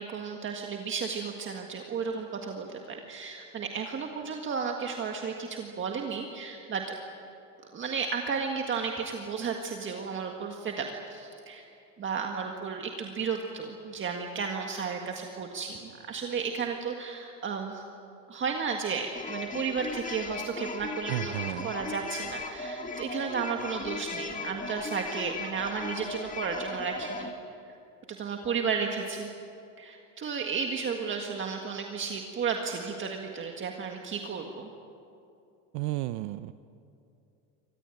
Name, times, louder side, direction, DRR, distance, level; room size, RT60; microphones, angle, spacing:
voice 1, 0.0-6.8 7.6-11.6 12.0-17.8 18.3-21.3 21.6-27.3 28.1-29.3 29.8-34.7, right 5 dB, 30° right, 2 dB, 1.8 m, -33 dB
sound 1, 19.1-27.3, left 3 dB, 20° left, 1.8 m, -37 dB
voice 2, 21.1-21.7 35.7-36.5, right 17 dB, 80° right, 13 dB, 0.7 m, -32 dB
24.5 x 18.5 x 9.1 m, 2.6 s
cardioid pair, 130°, 38 cm